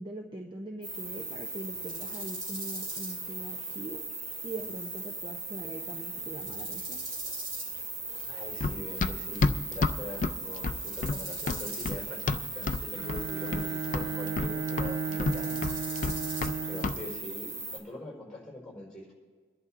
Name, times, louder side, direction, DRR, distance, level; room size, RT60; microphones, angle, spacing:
voice 1, 0.0-4.0 4.4-7.0, right 1 dB, 25° right, 1 dB, 0.6 m, -42 dB
sound 1, 0.8-17.8, right 2 dB, 45° right, 2.9 m, -38 dB
voice 2, 8.3-15.6 16.7-19.1, left 1 dB, 5° left, -4 dB, 4.4 m, -43 dB
Run, 8.6-12.8 13.1-13.7 13.9-16.6 16.8-17.0, left 3 dB, 45° left, 0.4 m, -30 dB
Bowed string instrument, 13.0-17.1, right 5 dB, 60° right, 0.3 m, -35 dB
26.0 x 11.0 x 2.5 m, 1.5 s
head